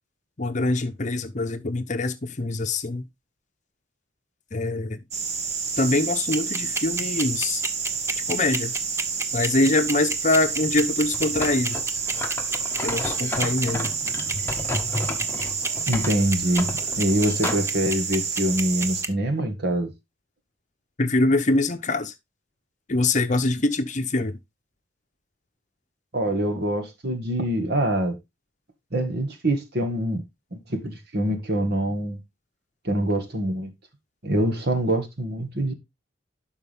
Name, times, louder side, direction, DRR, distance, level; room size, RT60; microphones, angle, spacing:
voice 1, 0.4-3.0 4.5-5.0 5.8-7.6 8.3-8.7 9.3-11.8 12.8-13.9 21.0-22.1 22.9-24.4, left 2 dB, 40° left, 0.8 m, -24 dB
sound 1, 5.1-19.0, right 5 dB, 35° right, 1.1 m, -29 dB
sound 2, 6.3-19.1, right 3 dB, 15° right, 0.6 m, -29 dB
sound 3, 10.4-17.7, left 2 dB, 10° left, 1.1 m, -33 dB
voice 2, 15.9-19.9 26.1-28.1 28.9-30.2 30.5-32.2 32.8-33.7 34.2-35.7, right 1 dB, 55° right, 1.7 m, -25 dB
11.5 x 4.8 x 3.5 m
head